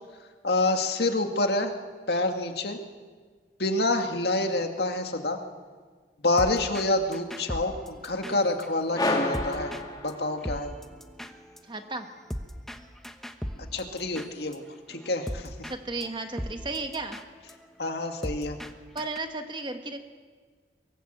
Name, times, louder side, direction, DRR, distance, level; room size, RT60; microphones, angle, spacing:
voice 1, 0.4-1.7 2.1-2.8 3.6-5.4 6.2-9.7 10.0-10.7 13.7-15.5 17.8-18.6, left 2 dB, 65° left, 5 dB, 2.0 m, -27 dB
sound 1, 6.4-6.9 7.1-9.8 10.1-10.2 10.4-14.6 14.9-15.8 16.0-16.1 16.4-18.7 19.0-19.2, equal, ahead, 1.0 m, -38 dB
sound 2, 8.9-10.7, left 2 dB, 20° left, 2.3 m, -29 dB
voice 2, 11.7-12.1 15.7-17.2 18.9-20.0, right 2 dB, 25° right, 6 dB, 1.5 m, -34 dB
24.0 x 18.5 x 8.0 m, 1.5 s
head